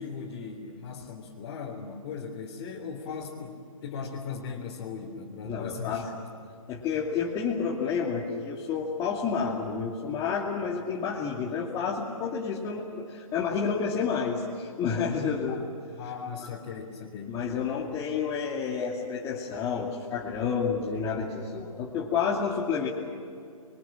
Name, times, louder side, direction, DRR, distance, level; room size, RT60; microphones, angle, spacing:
voice 1, 0.0-6.2 15.5-15.6 16.0-17.4, left 6 dB, 35° left, -2 dB, 3.5 m, -38 dB
voice 2, 5.4-6.1 6.7-15.6 17.3-22.9, left 6 dB, 20° left, -4 dB, 2.6 m, -30 dB
27.5 x 23.5 x 8.8 m, 2.4 s
hypercardioid pair, 140°, 18 cm